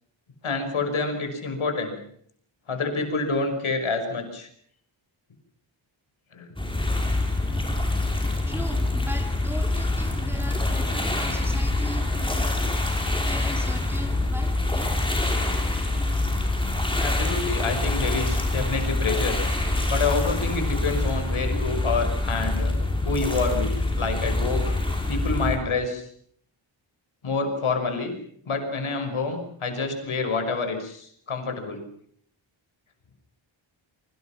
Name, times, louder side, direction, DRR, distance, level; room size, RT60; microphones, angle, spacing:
voice 1, 0.4-1.9 2.7-4.5 6.3-6.5 17.0-19.4 19.9-22.7 23.0-24.7 25.1-26.1 27.2-28.1 28.5-31.8, left 4 dB, 85° left, 6 dB, 5.7 m, -27 dB
sound 1, 6.6-25.6, left 2 dB, 10° left, 5.1 m, -25 dB
voice 2, 8.0-12.6 13.2-15.0, equal, 5° right, 5 dB, 3.1 m, -39 dB
27.0 x 24.5 x 5.9 m, 0.64 s
wide cardioid pair, 150°, 48 cm